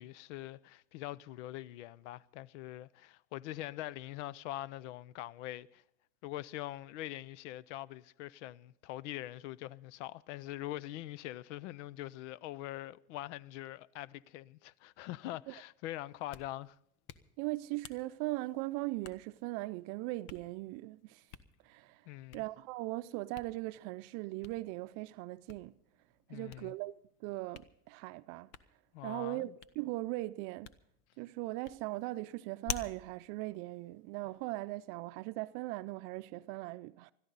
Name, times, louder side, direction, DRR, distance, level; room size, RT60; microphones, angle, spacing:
voice 1, 0.0-5.8 6.2-16.8 22.1-22.4 26.3-26.7 28.9-29.5, left 15 dB, 85° left, 0.6 m, -43 dB
Hands, 16.1-34.6, left 8 dB, 65° left, 1.1 m, -51 dB
voice 2, 17.4-21.3 21.6-22.1 22.3-25.7 26.3-26.9 27.2-28.5 29.0-30.7 31.2-37.1, right 20 dB, 65° right, 0.5 m, -39 dB
21.0 x 13.5 x 4.0 m
supercardioid pair, 100°, 35 cm